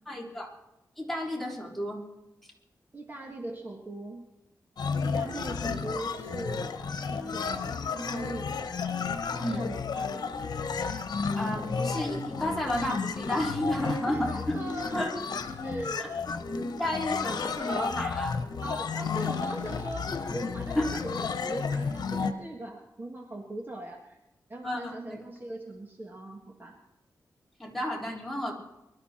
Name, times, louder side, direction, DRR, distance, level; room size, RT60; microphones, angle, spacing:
voice 1, 0.1-0.5 1.0-2.0 5.6-5.7 9.4-9.6 11.3-14.6 14.9-15.1 16.0-16.1 16.8-18.4 20.8-21.0 24.6-25.2 27.6-28.5, left 1 dB, 5° left, -3 dB, 3.4 m, -32 dB
voice 2, 2.9-4.3 5.0-6.6 7.1-8.6 9.3-10.2 13.7-15.3 15.6-16.2 18.6-24.2 24.5-26.8, right 1 dB, 30° right, 1 dB, 1.8 m, -40 dB
sound 1, 4.8-22.3, left 5 dB, 80° left, 1.1 m, -32 dB
24.0 x 12.5 x 4.4 m, 0.92 s
wide cardioid pair, 125°, 7 cm